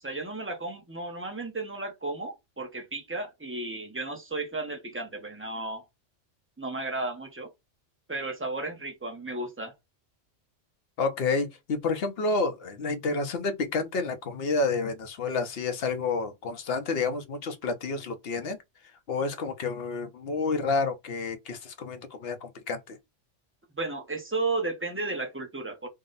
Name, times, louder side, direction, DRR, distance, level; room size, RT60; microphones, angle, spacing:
voice 1, 0.0-5.9 6.6-7.5 8.1-9.7 23.8-25.9, right 2 dB, 10° right, 0.7 m, -34 dB
voice 2, 11.0-18.6 19.1-23.0, left 3 dB, 55° left, 0.9 m, -29 dB
3.7 x 2.2 x 3.9 m
omnidirectional pair, 1.3 m